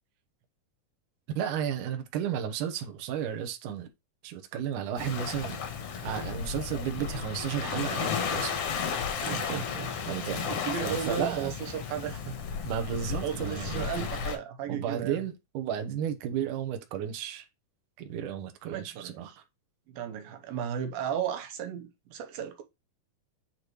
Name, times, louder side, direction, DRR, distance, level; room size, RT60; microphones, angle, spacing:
voice 1, 1.4-3.9 4.2-8.5 9.2-9.6 10.1-11.6 12.6-14.1 14.7-17.5 18.0-19.3, right 9 dB, 75° right, 2.4 m, -33 dB
Waves surf, 5.0-14.4, left 7 dB, 65° left, 1.5 m, -34 dB
voice 2, 9.3-9.9 10.5-12.4 13.1-15.2 18.6-19.4 19.9-22.6, right 8 dB, 90° right, 2.8 m, -35 dB
8.5 x 4.0 x 3.1 m
omnidirectional pair, 4.1 m